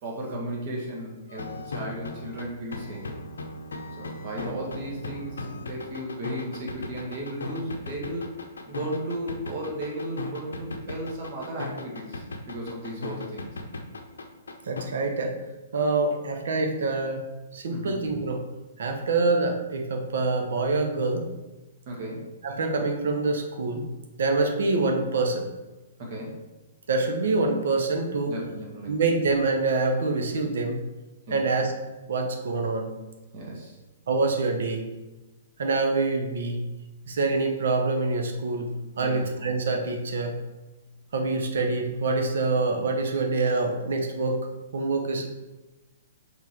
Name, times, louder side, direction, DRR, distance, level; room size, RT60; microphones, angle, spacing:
voice 1, 0.0-3.1 4.0-8.3 8.7-13.5 17.7-17.9 21.8-22.3 26.0-26.4 28.3-29.0 31.3-31.4 33.3-33.8 39.0-39.3, right 1 dB, 40° right, -3 dB, 1.8 m, -35 dB
sound 1, 1.3-14.8, left 3 dB, 65° left, 0.7 m, -37 dB
voice 2, 14.6-15.4 15.7-17.2 17.5-18.4 18.8-21.3 22.4-23.9 24.2-25.5 26.9-28.4 28.9-30.8 31.3-31.7 32.1-32.9 34.1-34.8 35.6-36.6 37.1-40.4 41.1-44.4 44.7-45.3, right 3 dB, 60° right, 4 dB, 1.0 m, -26 dB
5.8 x 3.8 x 4.5 m, 1.1 s
figure-of-eight pair, 115°, 0 cm